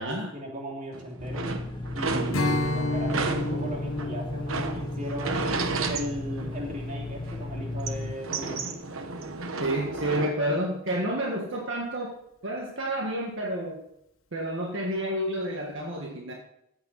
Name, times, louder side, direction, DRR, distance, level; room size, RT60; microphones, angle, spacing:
voice 1, 0.0-1.5 1.9-5.5 5.9-8.8, equal, 40° right, -1 dB, 3.1 m, -37 dB
sound 1, 0.9-2.7 3.1-6.9 7.2-10.3, right 4 dB, 80° right, 1.2 m, -32 dB
sound 2, 1.2-8.1, left 1 dB, 25° left, 0.9 m, -35 dB
Strum, 2.3-7.8, left 2 dB, 90° left, 1.4 m, -32 dB
voice 2, 9.6-12.2 12.4-13.8 14.3-16.3, right 1 dB, 65° right, 0 dB, 1.7 m, -30 dB
15.0 x 9.0 x 4.1 m, 0.78 s
head